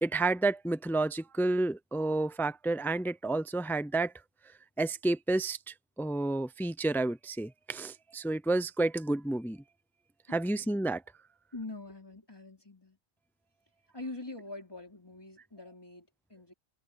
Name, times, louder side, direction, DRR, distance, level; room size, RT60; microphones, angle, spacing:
voice 1, 0.0-4.1 4.8-9.6 10.3-11.0, right 2 dB, 5° left, 0.5 m, -30 dB
voice 2, 10.3-10.8 11.5-13.0 13.9-16.5, left 2 dB, 20° left, 4.6 m, -44 dB
omnidirectional pair, 1.2 m